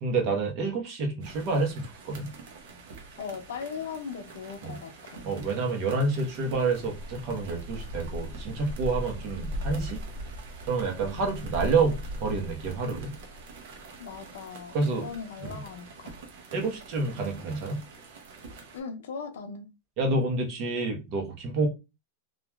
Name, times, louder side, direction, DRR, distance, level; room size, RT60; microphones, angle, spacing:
voice 1, 0.0-2.3 4.6-4.8 5.2-10.0 10.7-13.1 14.7-15.1 15.4-15.6 16.5-17.8 20.0-21.7, right 3 dB, 50° right, 1.0 m, -28 dB
sound 1, 1.2-18.8, equal, 70° right, 0.7 m, -41 dB
voice 2, 3.2-5.3 14.0-16.3 18.7-19.7, left 6 dB, 80° left, 0.5 m, -39 dB
2.9 x 2.4 x 2.3 m
supercardioid pair, 125°, 0 cm